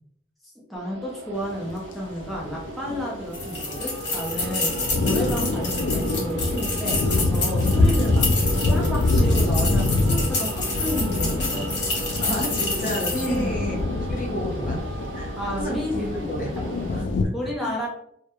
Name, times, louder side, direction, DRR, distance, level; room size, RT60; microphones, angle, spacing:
voice 1, 0.4-8.3 8.7-11.7 13.1-13.6 15.4-16.6 17.3-17.9, equal, ahead, -4 dB, 0.4 m, -31 dB
sound 1, 0.8-17.0, right 3 dB, 85° right, 0.4 m, -37 dB
sound 2, 1.4-1.7 2.2-17.3, left 2 dB, 85° left, 0.3 m, -25 dB
sound 3, 3.3-13.4, left 3 dB, 70° left, 1.0 m, -29 dB
voice 2, 4.8-5.6 7.7-7.8 8.3-8.4 12.2-14.8 15.1-16.5 16.9-17.3 17.6-17.7, equal, 50° left, -1 dB, 0.7 m, -32 dB
2.2 x 2.1 x 2.8 m, 0.71 s
head